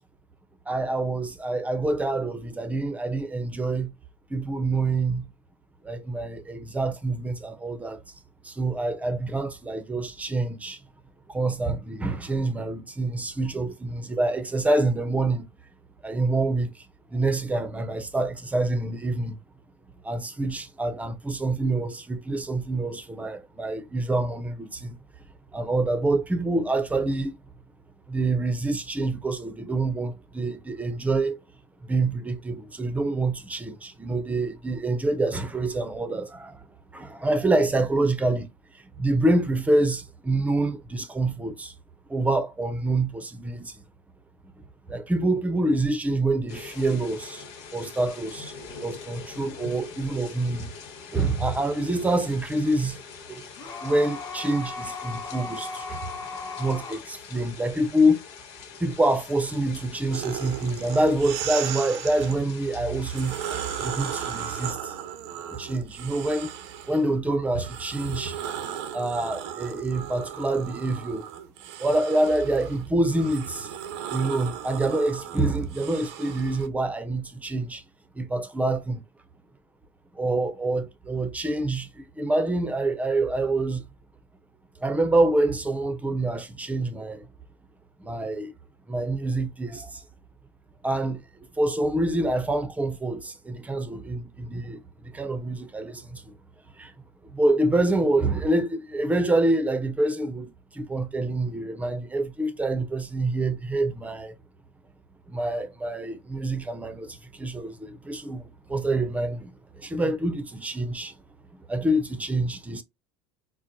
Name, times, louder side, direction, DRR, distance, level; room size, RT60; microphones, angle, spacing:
voice 1, 0.7-3.9 4.3-5.3 5.8-8.0 8.4-10.8 11.3-15.5 16.0-16.9 17.1-19.4 20.0-25.0 25.5-27.4 28.1-31.4 31.8-36.7 36.9-38.5 38.7-41.7 42.1-43.8 44.6-47.4 47.7-48.5 48.8-50.7 51.1-53.0 53.3-53.5 53.8-56.1 56.6-58.2 58.8-63.4 63.8-64.9 65.5-66.5 66.9-68.4 68.9-71.3 71.8-73.7 74.1-77.8 78.1-79.0 80.1-83.9 84.8-87.3 88.0-88.5 88.9-90.0 90.8-91.2 91.5-96.3 96.8-96.9 97.3-104.3 105.3-111.2 111.7-112.8, right 2 dB, 10° right, 0.7 m, -26 dB
sound 1, 46.5-64.7, left 5 dB, 80° left, 1.2 m, -44 dB
sound 2, 53.6-57.0, left 4 dB, 30° left, 1.0 m, -36 dB
sound 3, 60.1-62.4 63.0-67.0 67.5-76.7, right 9 dB, 85° right, 0.7 m, -36 dB
4.4 x 2.1 x 2.6 m
supercardioid pair, 115°, 14 cm